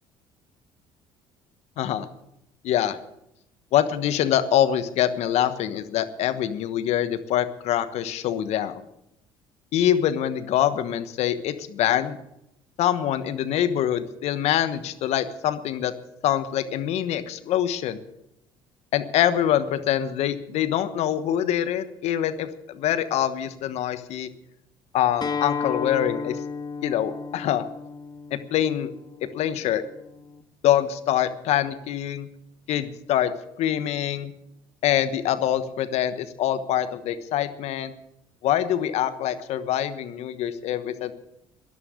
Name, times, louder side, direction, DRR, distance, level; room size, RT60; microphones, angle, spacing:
voice 1, 1.8-2.1 2.6-3.0 3.7-8.8 9.7-12.2 12.8-15.9 16.2-18.0 18.9-24.3 24.9-26.4 26.8-27.6 28.3-28.9 29.3-29.8 30.6-32.3 32.7-33.3 33.6-34.3 34.8-37.9 38.4-41.1, left 11 dB, 65° left, 12 dB, 1.2 m, -24 dB
Acoustic guitar, 25.2-30.4, left 5 dB, 35° left, 1.3 m, -33 dB
13.0 x 11.0 x 8.3 m, 0.82 s
hypercardioid pair, 60°, 12 cm